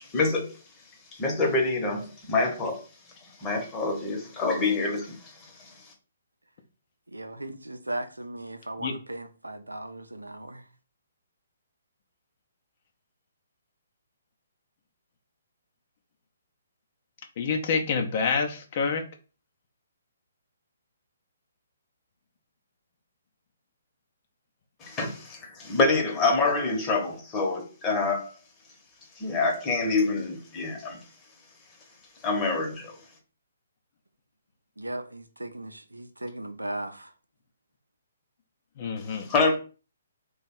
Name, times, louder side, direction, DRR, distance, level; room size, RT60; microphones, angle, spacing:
voice 1, 0.1-0.5 1.2-2.8 3.4-5.2 24.8-28.3 29.2-31.0 32.2-33.0 39.3-39.6, left 3 dB, 20° left, 1.0 m, -26 dB
voice 2, 7.1-10.6 34.8-37.1, right 1 dB, 90° right, 0.5 m, -37 dB
voice 3, 17.4-19.0 38.8-39.3, left 5 dB, 45° left, 0.6 m, -27 dB
3.0 x 2.3 x 4.2 m
figure-of-eight pair, 130°, 0 cm